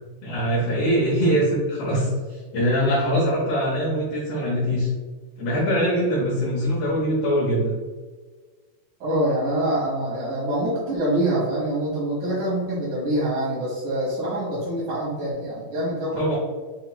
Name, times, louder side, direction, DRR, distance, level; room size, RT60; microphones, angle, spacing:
voice 1, 0.2-4.9 5.4-7.7 16.2-16.3, equal, 75° left, -7 dB, 2.2 m, -23 dB
voice 2, 9.0-16.4, right 1 dB, 60° right, -8 dB, 2.5 m, -25 dB
7.0 x 2.9 x 2.3 m, 1.4 s
omnidirectional pair, 5.1 m